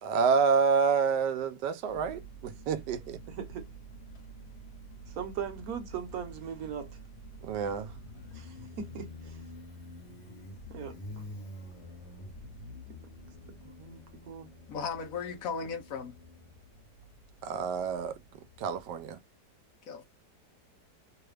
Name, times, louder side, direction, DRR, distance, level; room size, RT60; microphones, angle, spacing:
voice 1, 0.0-3.2 7.4-7.9 17.4-18.2 18.6-19.2, right 5 dB, 85° right, 1.3 m, -28 dB
Motorcycle, 1.9-19.1, equal, 45° left, 1.2 m, -48 dB
voice 2, 3.3-3.7 5.1-7.0 8.3-9.4 10.7-11.0 13.6-14.5, right 7 dB, 65° right, 1.3 m, -39 dB
voice 3, 14.7-16.1 19.9-20.1, left 5 dB, 65° left, 0.9 m, -36 dB
3.1 x 2.3 x 3.2 m
omnidirectional pair, 1.8 m